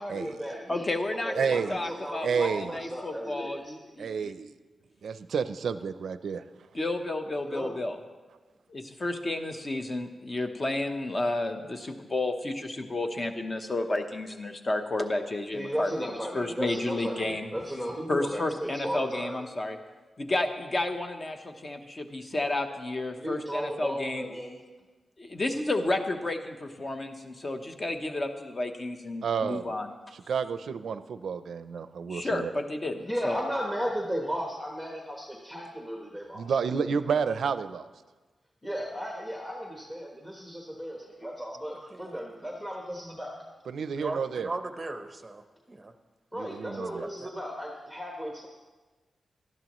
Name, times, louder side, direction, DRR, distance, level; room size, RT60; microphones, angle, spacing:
voice 1, 0.0-0.8 1.2-3.7 7.4-7.7 15.5-19.4 23.1-24.6 33.0-36.6 36.8-37.0 38.6-43.3 46.3-48.5, equal, 5° left, -1 dB, 1.2 m, -35 dB
voice 2, 0.7-4.1 6.7-8.0 8.7-15.9 16.3-17.5 18.1-19.8 20.2-24.2 25.2-29.9 32.1-33.4, left 2 dB, 25° left, 5 dB, 0.9 m, -31 dB
voice 3, 1.3-1.9 2.2-2.8 4.0-4.5 5.0-6.4 29.2-29.6 30.1-32.5 36.3-37.9 43.7-44.5 46.3-47.0, right 6 dB, 75° right, 12 dB, 0.5 m, -30 dB
voice 4, 41.9-42.2 43.9-45.9 47.0-47.3, right 2 dB, 20° right, 7 dB, 0.8 m, -38 dB
18.5 x 12.0 x 3.1 m, 1.3 s
wide cardioid pair, 170°, 0 cm